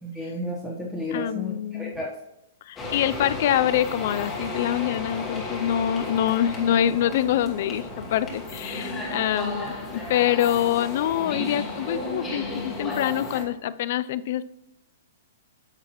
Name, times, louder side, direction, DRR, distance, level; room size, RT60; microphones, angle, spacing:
voice 1, 0.0-2.1, left 1 dB, 10° right, -6 dB, 1.1 m, -32 dB
voice 2, 1.1-2.0 2.7-14.4, left 11 dB, 45° left, 16 dB, 0.4 m, -25 dB
sound 1, 2.8-13.4, left 2 dB, 10° left, 1.3 m, -33 dB
9.3 x 7.5 x 3.0 m, 0.86 s
hypercardioid pair, 170°, 0 cm